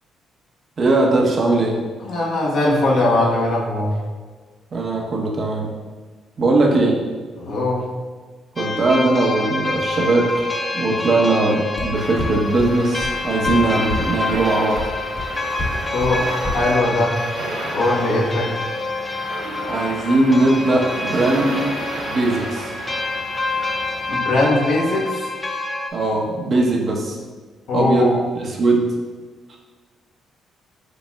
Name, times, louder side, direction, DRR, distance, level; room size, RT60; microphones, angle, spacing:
voice 1, 0.8-1.8 4.7-5.7 6.4-7.0 8.6-10.5 10.7-14.8 19.7-21.6 22.0-22.7 25.9-27.2 27.7-28.9, right 2 dB, 45° right, -1 dB, 0.9 m, -19 dB
voice 2, 2.0-4.0 7.4-7.9 15.9-17.2 17.7-18.6 24.1-25.3 27.7-28.1, left 2 dB, 75° left, -4 dB, 1.2 m, -20 dB
sound 1, 8.6-25.9, left 2 dB, 20° left, 0.5 m, -27 dB
sound 2, 11.8-11.9 12.2-12.3 12.6-12.7 13.0-13.1 13.4-13.5 13.9-14.0 14.3-14.4 14.8-14.9 15.2-15.3 15.6-15.7 16.0-16.1 16.4-16.5, equal, 50° left, 1.3 m, -28 dB
sound 3, 11.9-24.1, right 2 dB, 85° right, 0.9 m, -33 dB
5.2 x 4.1 x 2.3 m, 1.4 s
cardioid pair, 90°, 0 cm